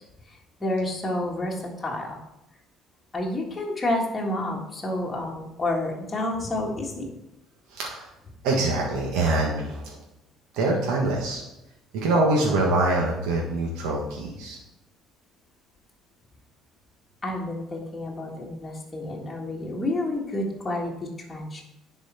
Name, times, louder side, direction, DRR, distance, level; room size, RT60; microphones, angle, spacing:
voice 1, 0.3-2.2 3.1-7.1 17.2-21.6, left 1 dB, 20° left, -3 dB, 1.8 m, -29 dB
voice 2, 7.7-8.1 8.4-10.0 10.5-11.4 11.9-14.6, right 2 dB, 85° right, -2 dB, 1.5 m, -24 dB
10.5 x 4.5 x 4.3 m, 0.91 s
cardioid pair, 120°, 0 cm